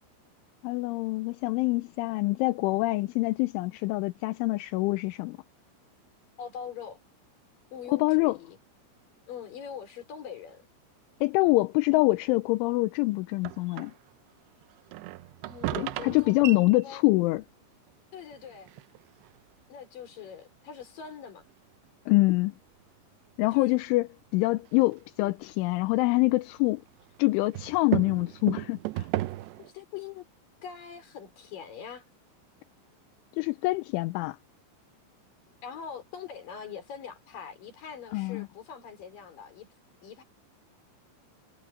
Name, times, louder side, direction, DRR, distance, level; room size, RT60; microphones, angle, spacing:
voice 1, 0.6-5.4 7.9-8.4 11.2-13.9 15.7-17.4 22.1-22.5 23.4-26.8 27.2-29.1 33.3-34.4 38.1-38.5, left 21 dB, 85° left, 3.2 m, -25 dB
voice 2, 6.4-7.0 7.7-8.6 9.3-10.7 15.4-17.0 18.1-18.7 19.7-21.5 23.5-23.7 29.6-30.3 30.6-32.0 35.6-39.7 40.0-40.2, left 7 dB, 45° left, 5.4 m, -43 dB
sound 1, 13.4-14.1 14.6-17.4 17.9-18.0 18.3-19.7 20.2-20.3 20.8-20.9 21.5-21.6 23.5-23.8 24.5-26.0 26.3-29.7, right 18 dB, 90° right, 2.5 m, -35 dB
omnidirectional pair, 5.5 m